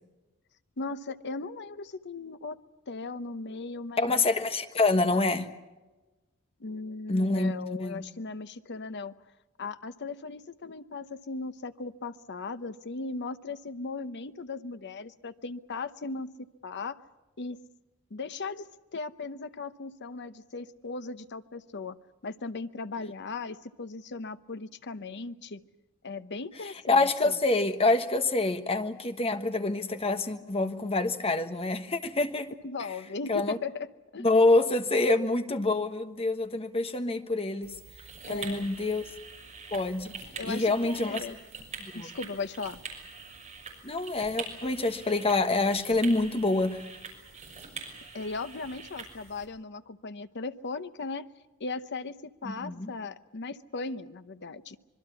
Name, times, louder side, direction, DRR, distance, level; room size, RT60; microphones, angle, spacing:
voice 1, 0.8-2.6 2.9-4.1 6.6-9.1 9.6-16.3 16.6-17.0 17.4-17.6 18.1-18.7 18.9-22.0 22.2-25.6 26.0-27.4 32.6-33.9 34.1-34.2 38.2-38.7 40.4-41.4 41.9-42.8 48.1-51.3 51.6-54.8, left 3 dB, 55° left, 12 dB, 0.9 m, -37 dB
voice 2, 4.0-5.5 7.1-8.0 26.9-32.5 33.3-33.6 34.2-37.7 38.3-39.0 39.7-40.2 40.4-41.2 41.8-42.1 43.8-46.8 52.4-52.9, left 2 dB, 25° left, 8 dB, 1.3 m, -26 dB
sound 1, 37.6-49.5, right 4 dB, 30° right, 6.0 m, -44 dB
25.5 x 22.5 x 7.0 m, 1.1 s
head